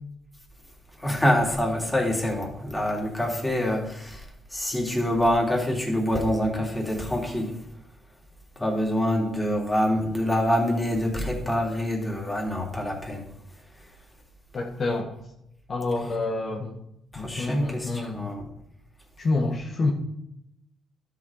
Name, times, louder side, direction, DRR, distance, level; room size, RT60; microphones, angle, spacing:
voice 1, 1.0-7.6 8.6-13.3 17.1-18.4, equal, 10° left, 3.1 m, -26 dB
voice 2, 14.5-15.1 15.7-16.7 17.2-18.3 19.2-19.9, left 3 dB, 45° left, 1.7 m, -28 dB
12.5 x 6.7 x 4.9 m
cardioid pair, 90°, 0 cm